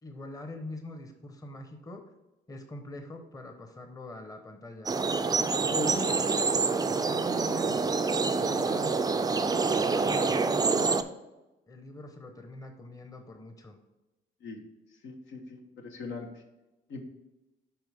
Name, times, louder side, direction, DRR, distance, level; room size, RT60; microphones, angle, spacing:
voice 1, 0.0-2.0 2.5-4.9 5.6-6.5 7.1-7.8 8.1-8.9 9.6-11.1 11.7-13.8, left 1 dB, 20° left, 5 dB, 0.9 m, -43 dB
sound 1, 4.9-11.0, right 4 dB, 20° right, 0.4 m, -27 dB
voice 2, 15.0-16.3 16.9-17.0, left 2 dB, 75° left, 3 dB, 1.2 m, -39 dB
10.0 x 3.7 x 3.5 m, 1.0 s
cardioid pair, 90°, 20 cm